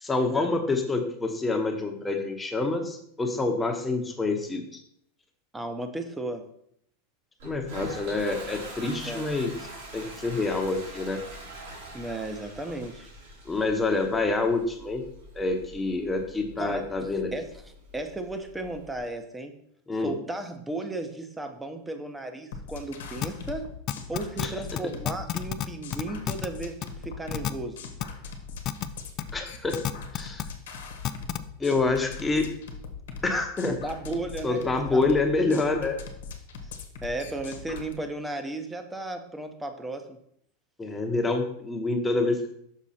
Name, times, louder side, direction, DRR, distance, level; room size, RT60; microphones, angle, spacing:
voice 1, 0.0-4.6 7.4-9.5 9.9-11.2 13.4-15.0 15.3-17.3 19.9-20.1 24.4-24.5 29.3-29.8 30.1-30.5 31.6-32.5 33.2-33.8 34.4-36.0 40.8-42.5, left 3 dB, 15° left, 4 dB, 1.1 m, -27 dB
voice 2, 5.5-6.5 9.1-9.3 11.9-13.1 16.6-16.8 17.3-17.5 17.9-19.6 20.0-23.7 24.1-27.8 33.6-35.0 36.6-36.7 37.0-40.2, right 2 dB, 10° right, 6 dB, 0.9 m, -35 dB
Toilet flush, 7.4-19.0, right 1 dB, 70° right, 2.6 m, -44 dB
sound 1, 22.5-37.9, left 4 dB, 80° left, 1.1 m, -41 dB
sound 2, 23.2-23.3 23.9-24.5 24.8-24.9 25.1-25.7 25.9-26.5 26.8-26.9 27.3-27.5 28.0-28.1 28.6-28.9 29.2-29.3 29.7-30.4 31.0-31.4, left 13 dB, 45° left, 0.4 m, -28 dB
6.3 x 4.7 x 4.3 m, 0.69 s
hypercardioid pair, 110°, 0 cm